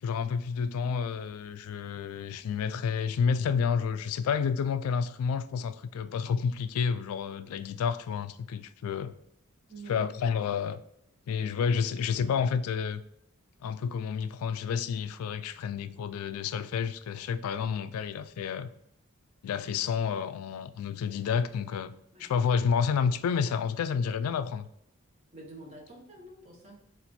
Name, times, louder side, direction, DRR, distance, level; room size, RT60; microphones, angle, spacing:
voice 1, 0.0-9.1 9.9-10.8 11.3-13.0 13.6-18.7 19.4-21.9 22.2-24.6, left 6 dB, 90° left, 0.3 m, -30 dB
voice 2, 9.7-10.1 22.1-22.3 25.3-26.8, right 2 dB, 30° right, 1.0 m, -47 dB
4.1 x 2.5 x 4.2 m
head